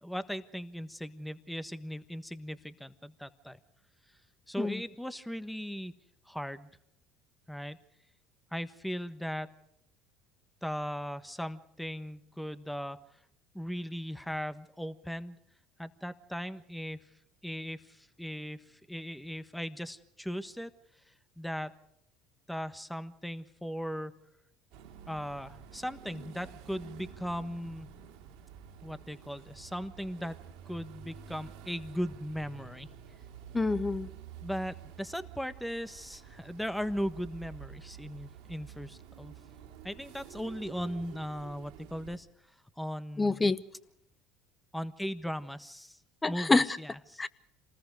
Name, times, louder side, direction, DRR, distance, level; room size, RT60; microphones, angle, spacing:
voice 1, 0.0-3.6 4.5-5.9 6.2-6.8 7.5-7.8 8.5-9.6 10.6-13.0 13.5-15.4 15.8-17.1 17.4-20.7 21.1-21.8 22.5-24.2 25.1-27.9 28.8-30.4 30.7-32.9 34.4-39.4 39.8-42.3 42.8-43.5 44.7-46.0 46.3-47.2, equal, 5° left, 1.3 m, -38 dB
sound 1, 24.7-42.2, right 8 dB, 70° right, 2.7 m, -50 dB
voice 2, 33.5-34.1 43.2-43.6 46.2-46.6 47.2-47.3, left 3 dB, 20° left, 1.1 m, -26 dB
27.5 x 20.0 x 4.8 m
hypercardioid pair, 75°, 0 cm